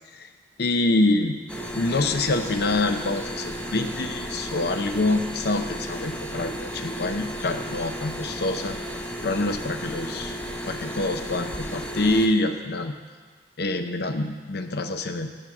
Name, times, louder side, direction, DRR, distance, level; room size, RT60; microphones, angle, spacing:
voice 1, 0.6-1.4 1.7-8.8 9.2-10.4 10.6-13.0 13.6-15.3, left 2 dB, 60° left, 7 dB, 0.7 m, -26 dB
sound 1, 1.5-12.3, equal, 5° left, 0.7 m, -34 dB
11.0 x 5.1 x 6.1 m, 1.5 s
head